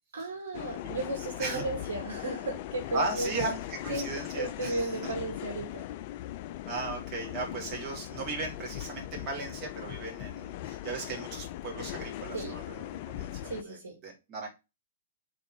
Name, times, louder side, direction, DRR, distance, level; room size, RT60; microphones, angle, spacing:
voice 1, 0.1-3.5 3.9-5.9 12.3-12.6 13.4-14.0, right 2 dB, 70° right, 2.2 m, -35 dB
sound 1, 0.5-13.6, left 13 dB, 45° left, 0.4 m, -39 dB
voice 2, 2.9-5.1 6.6-13.8 14.0-14.5, right 3 dB, 30° right, 3.0 m, -36 dB
5.1 x 4.5 x 4.7 m
figure-of-eight pair, 115°, 0 cm